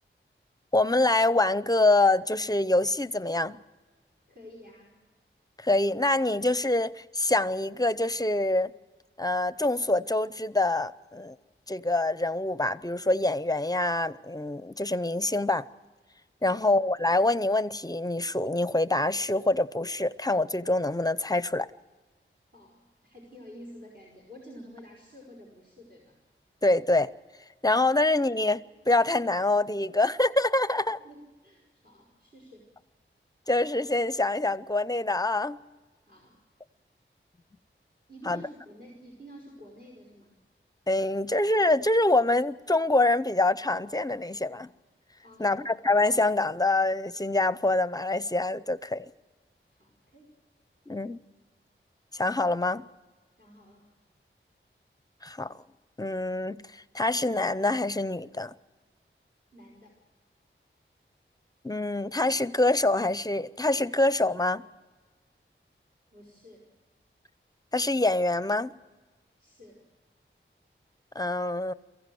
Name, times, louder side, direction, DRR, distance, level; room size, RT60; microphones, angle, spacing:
voice 1, 0.7-3.6 5.6-8.7 9.2-11.4 11.7-15.7 16.4-21.7 26.6-27.1 27.6-28.6 28.9-31.0 33.5-35.6 38.3-38.4 40.9-44.7 45.4-49.1 50.9-51.2 52.1-52.9 55.2-55.6 56.0-58.5 61.6-64.6 67.7-68.7 71.1-71.7, left 2 dB, 20° left, 0.6 m, -25 dB
voice 2, 4.3-5.0 22.5-26.2 31.0-32.7 36.0-36.4 38.1-40.3 45.2-45.7 49.7-50.3 53.4-53.9 59.5-59.9 66.1-66.7 69.4-69.8, equal, 55° right, 5.1 m, -50 dB
23.5 x 15.5 x 7.7 m
wide cardioid pair, 80°, 21 cm